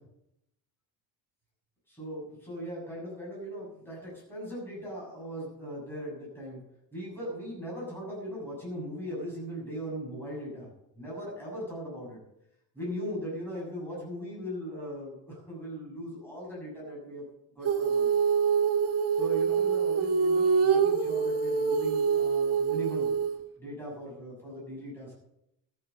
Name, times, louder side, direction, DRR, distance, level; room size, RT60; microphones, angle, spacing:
voice 1, 1.9-6.6 6.9-10.7 11.0-12.2 12.7-17.2 17.5-18.1 19.1-23.1 23.6-25.2, equal, 5° left, -5 dB, 7.0 m, -39 dB
Female singing, 17.6-23.4, right 6 dB, 40° right, 2.2 m, -25 dB
14.0 x 9.3 x 6.5 m, 0.80 s
cardioid pair, 165°, 38 cm